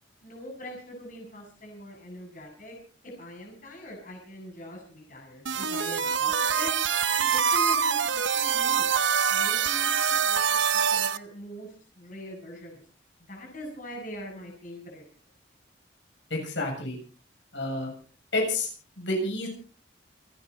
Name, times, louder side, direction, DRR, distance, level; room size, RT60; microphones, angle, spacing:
voice 1, 0.2-2.8 3.2-6.7 7.1-8.9 9.3-12.8 13.3-15.0, equal, 45° left, 0 dB, 7.3 m, -42 dB
sound 1, 5.5-11.2, right 7 dB, 85° right, 0.9 m, -25 dB
voice 2, 16.3-17.0 17.5-17.9 18.3-18.7 19.0-19.5, left 2 dB, 75° left, 1 dB, 7.4 m, -29 dB
28.5 x 9.9 x 4.3 m, 0.38 s
head